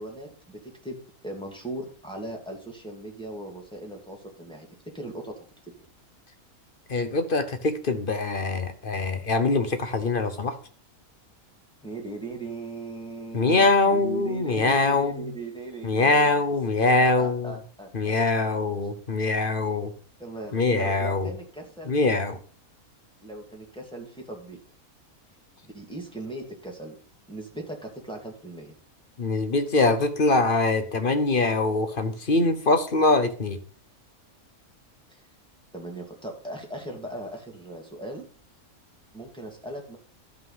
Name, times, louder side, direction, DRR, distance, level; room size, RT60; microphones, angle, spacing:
voice 1, 0.0-4.7 4.9-5.4 11.8-16.4 16.9-18.2 20.2-22.0 23.2-24.6 25.6-26.9 27.3-28.7 35.1-35.2 35.7-38.2 39.1-40.0, right 2 dB, 5° left, 0 dB, 2.4 m, -38 dB
voice 2, 6.9-10.6 13.3-15.3 15.8-17.5 17.9-19.9 20.5-21.3 21.9-22.4 29.2-33.6, left 3 dB, 40° left, 8 dB, 1.0 m, -23 dB
12.5 x 5.7 x 5.6 m, 0.43 s
omnidirectional pair, 1.5 m